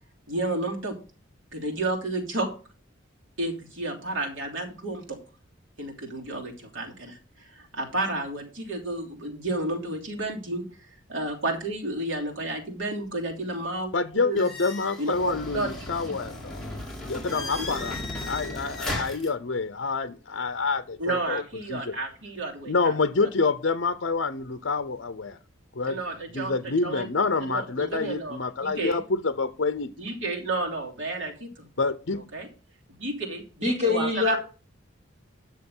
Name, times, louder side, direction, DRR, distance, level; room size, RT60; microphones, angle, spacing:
voice 1, 0.3-0.9 1.5-2.5 3.4-5.2 5.8-7.2 7.5-10.6 11.1-13.9 14.2-14.4 15.0-15.7 17.6-17.7 21.0-23.3 25.8-27.1 27.5-29.0 30.0-31.5 32.3-32.5 33.0-34.4, right 2 dB, 80° right, 3.0 m, -31 dB
voice 2, 13.9-16.6 17.0-18.0 18.2-21.4 21.7-21.9 22.7-25.4 25.8-26.0 26.3-29.9 31.8-32.2, left 4 dB, 65° left, 0.7 m, -27 dB
sound 1, 14.4-19.3, left 2 dB, ahead, 3.2 m, -35 dB
voice 3, 33.6-34.4, left 4 dB, 35° right, 2.6 m, -24 dB
10.0 x 6.4 x 5.5 m
head